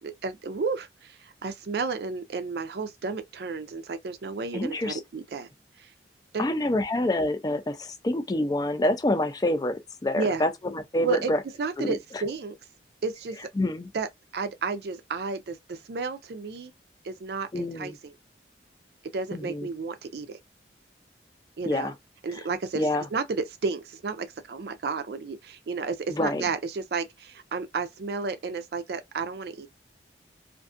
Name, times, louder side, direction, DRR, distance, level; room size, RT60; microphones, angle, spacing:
voice 1, 0.0-5.5 5.8-5.9 6.3-6.5 10.2-10.5 11.0-12.6 13.0-13.4 13.9-16.7 17.0-18.1 19.0-20.4 21.6-21.9 22.2-29.7, right 4 dB, 60° right, 0.4 m, -32 dB
voice 2, 4.5-5.0 6.4-11.4 11.8-12.0 13.6-13.9 17.5-18.0 19.3-19.7 21.7-21.9 22.3-22.4 22.7-23.1 26.1-26.4, left 1 dB, 20° left, 0.3 m, -27 dB
2.5 x 2.3 x 2.5 m
head